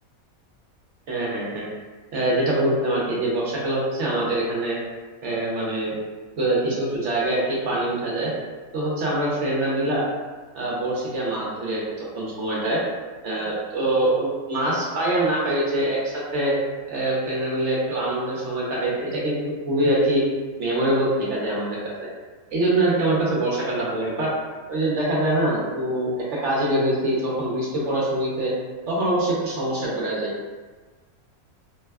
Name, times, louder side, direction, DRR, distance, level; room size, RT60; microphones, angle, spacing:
voice 1, 1.1-1.7 2.1-4.8 5.2-5.9 6.4-8.3 8.7-10.1 10.5-12.8 13.2-16.6 16.9-19.4 19.7-20.2 20.6-22.1 22.5-24.3 24.7-28.5 28.9-30.3, right 1 dB, 60° right, -5 dB, 1.0 m, -24 dB
4.5 x 2.2 x 2.2 m, 1.4 s
omnidirectional pair, 1.5 m